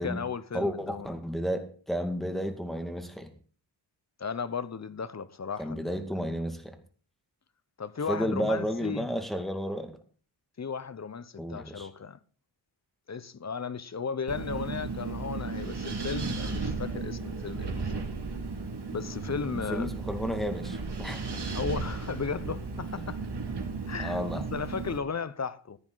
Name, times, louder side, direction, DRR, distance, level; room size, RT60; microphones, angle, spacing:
voice 1, 0.0-1.1 4.2-5.9 7.8-9.1 10.6-12.2 13.1-18.0 18.9-19.9 21.5-23.2 23.9-25.8, left 5 dB, 35° left, 0.9 m, -35 dB
voice 2, 0.5-3.3 5.6-6.8 8.1-10.0 11.4-11.9 19.2-19.4 19.7-21.3 23.0-23.1 24.0-24.4, equal, ahead, 2.2 m, -32 dB
Wind, 14.3-25.0, right 4 dB, 60° right, 2.4 m, -35 dB
15.0 x 9.7 x 4.0 m
wide cardioid pair, 85°, 45 cm